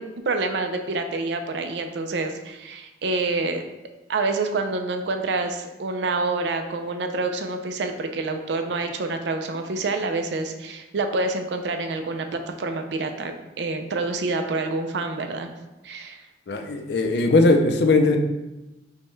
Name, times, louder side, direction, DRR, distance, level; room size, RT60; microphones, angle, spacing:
voice 1, 0.0-3.6 4.1-15.5 15.8-16.2, right 3 dB, 75° right, 6 dB, 0.4 m, -27 dB
voice 2, 16.5-18.2, left 2 dB, 70° left, 5 dB, 0.4 m, -19 dB
5.3 x 2.2 x 3.1 m, 1.0 s
head